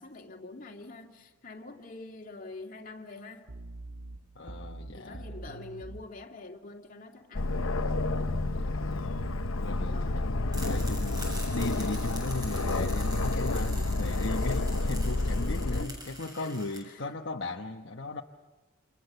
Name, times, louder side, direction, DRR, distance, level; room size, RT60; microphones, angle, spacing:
voice 1, 0.0-3.5 4.9-7.8 9.9-10.3 15.6-16.0 16.4-16.6 16.8-17.1, left 2 dB, 40° left, 2.5 m, -45 dB
sound 1, 3.5-6.1 7.8-11.4 12.5-14.1, right 1 dB, 65° right, 1.4 m, -43 dB
voice 2, 4.3-5.3 8.5-8.9 9.6-18.2, left 2 dB, 60° left, 1.1 m, -37 dB
Aircraft, 7.3-15.8, left 2 dB, 75° left, 0.9 m, -30 dB
sound 2, 10.5-16.8, equal, 20° right, 7.6 m, -45 dB
29.5 x 27.0 x 6.8 m
head